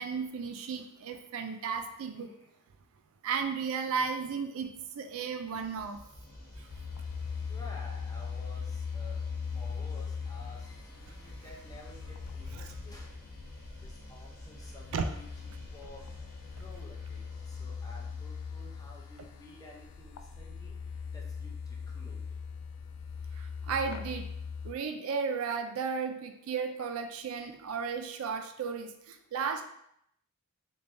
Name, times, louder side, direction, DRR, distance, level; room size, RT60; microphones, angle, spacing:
voice 1, 0.0-2.3 3.2-6.0 12.5-12.7 14.9-15.1 23.4-24.3 24.6-29.7, right 5 dB, 65° right, 6 dB, 0.3 m, -34 dB
voice 2, 1.7-2.5 7.5-13.2 13.8-15.3 15.7-16.1 16.6-22.4, left 2 dB, 15° left, -2 dB, 0.5 m, -53 dB
sound 1, 5.5-20.3, left 1 dB, 40° left, 1.0 m, -50 dB
sound 2, 6.7-24.7, left 6 dB, 80° left, 0.3 m, -40 dB
3.3 x 3.2 x 2.6 m, 0.74 s
head